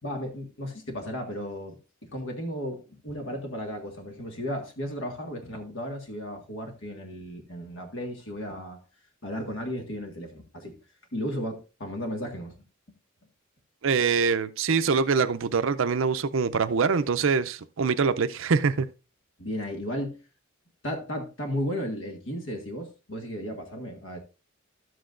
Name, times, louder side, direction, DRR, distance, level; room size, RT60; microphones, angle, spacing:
voice 1, 0.0-8.8 9.2-10.7 11.1-12.5 19.4-20.2 20.8-24.2, equal, 65° left, 1.7 m, -34 dB
voice 2, 13.8-18.9, right 5 dB, 70° right, 0.5 m, -24 dB
12.5 x 7.9 x 2.5 m
head